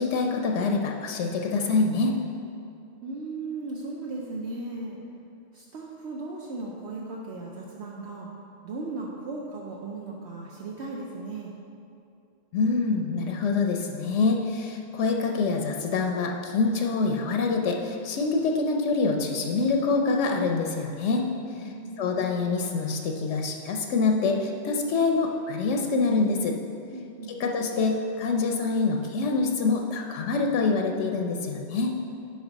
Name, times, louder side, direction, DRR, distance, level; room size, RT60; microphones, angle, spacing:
voice 1, 0.0-2.2 12.5-21.2 22.0-26.6 27.3-31.9, left 4 dB, 85° left, 2 dB, 1.0 m, -25 dB
voice 2, 3.0-5.0 5.5-8.3 8.6-11.5 21.6-22.3 26.9-27.3, right 3 dB, 70° right, -2 dB, 0.9 m, -36 dB
10.5 x 4.8 x 4.0 m, 2.6 s
omnidirectional pair, 1.2 m